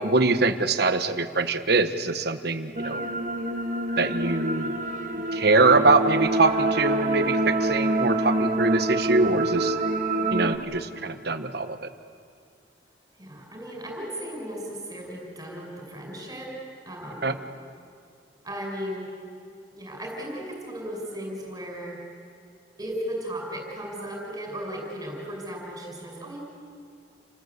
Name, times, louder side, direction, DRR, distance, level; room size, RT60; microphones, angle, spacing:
voice 1, 0.0-3.0 4.0-4.8 5.3-9.8 10.3-11.9 17.2-17.4, right 3 dB, 65° right, 9 dB, 1.2 m, -23 dB
sound 1, 2.8-10.6, right 2 dB, 45° right, 1.7 m, -26 dB
voice 2, 13.2-16.5 16.9-17.3 18.4-19.1 19.7-22.0 22.8-26.4, equal, 20° right, -1 dB, 5.9 m, -36 dB
29.5 x 20.0 x 8.1 m, 2.3 s
head